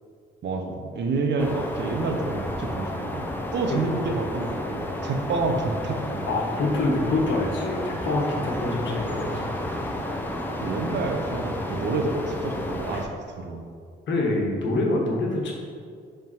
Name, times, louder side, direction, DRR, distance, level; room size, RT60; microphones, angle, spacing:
voice 1, 0.4-6.2 10.6-13.1 13.4-13.6, right 3 dB, 60° right, 3 dB, 0.8 m, -28 dB
sound 1, 1.4-13.1, left 1 dB, 10° left, 0.7 m, -31 dB
voice 2, 6.3-9.5 14.1-15.5, left 2 dB, 70° left, -1 dB, 1.3 m, -25 dB
5.2 x 3.7 x 5.5 m, 2.2 s
cardioid pair, 90°, 20 cm